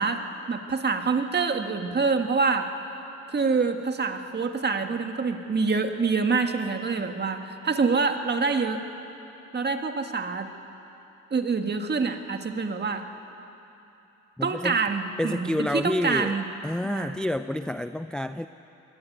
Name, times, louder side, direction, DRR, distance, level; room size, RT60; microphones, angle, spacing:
voice 1, 0.0-2.7 3.3-8.8 9.5-10.5 11.3-13.1 14.4-16.5 16.8-17.1, right 4 dB, 35° right, 6 dB, 1.8 m, -26 dB
voice 2, 14.4-14.8 15.2-16.4 16.6-18.5, left 1 dB, 5° left, 10 dB, 0.4 m, -28 dB
22.0 x 17.0 x 9.3 m, 3.0 s
cardioid pair, 90°, 30 cm